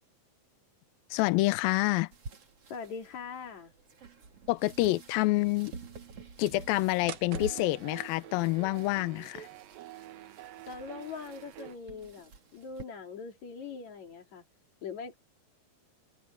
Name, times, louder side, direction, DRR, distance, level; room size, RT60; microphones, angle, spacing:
voice 1, 1.1-2.1 4.5-5.7 6.4-9.5, left 19 dB, 75° left, 2.4 m, -27 dB
sound 1, 2.1-12.8, right 4 dB, 40° right, 3.2 m, -48 dB
voice 2, 2.7-3.7 10.7-14.4 14.8-15.1, left 5 dB, 50° left, 3.7 m, -42 dB
sound 2, 7.1-11.8, right 13 dB, 70° right, 2.8 m, -46 dB
omnidirectional pair, 4.4 m